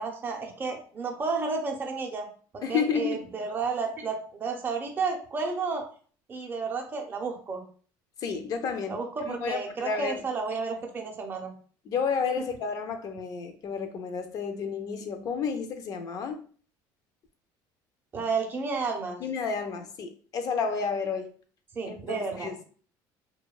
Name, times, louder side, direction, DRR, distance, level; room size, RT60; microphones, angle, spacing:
voice 1, 0.0-2.3 2.5-5.8 6.3-7.6 8.9-11.5 18.1-19.2 21.7-22.5, right 4 dB, 25° right, 2 dB, 0.5 m, -32 dB
voice 2, 2.6-3.2 8.2-9.0 9.3-10.2 11.9-16.4 19.2-21.3 21.8-22.6, left 5 dB, 45° left, 7 dB, 0.4 m, -31 dB
2.6 x 2.1 x 2.3 m, 0.43 s
cardioid pair, 140°, 9 cm